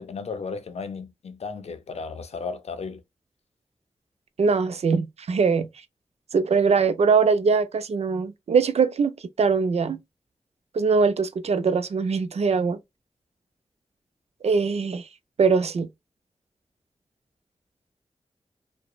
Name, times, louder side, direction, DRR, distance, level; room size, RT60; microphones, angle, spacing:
voice 1, 0.0-3.0, left 4 dB, 75° left, 0.5 m, -34 dB
voice 2, 4.4-5.7 6.3-10.0 10.7-12.8 14.4-15.0 15.4-15.9, right 5 dB, 75° right, 0.4 m, -22 dB
2.9 x 2.1 x 2.3 m
cardioid pair, 55°, 11 cm